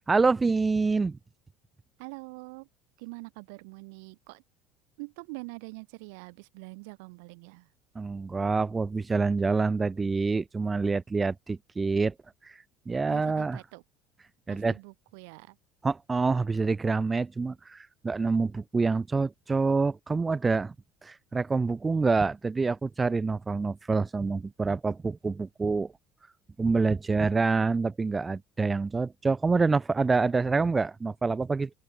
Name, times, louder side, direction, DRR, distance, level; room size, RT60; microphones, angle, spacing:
voice 1, 0.1-1.2 8.0-12.1 12.4-13.6 14.5-14.8 15.8-20.7 21.0-25.9 26.6-31.7, right 4 dB, 20° right, 0.5 m, -26 dB
voice 2, 2.0-2.7 3.0-4.4 5.0-7.7 13.1-13.8 14.5-15.6, right 31 dB, 80° right, 1.5 m, -44 dB
open air
supercardioid pair, 100°, 0 cm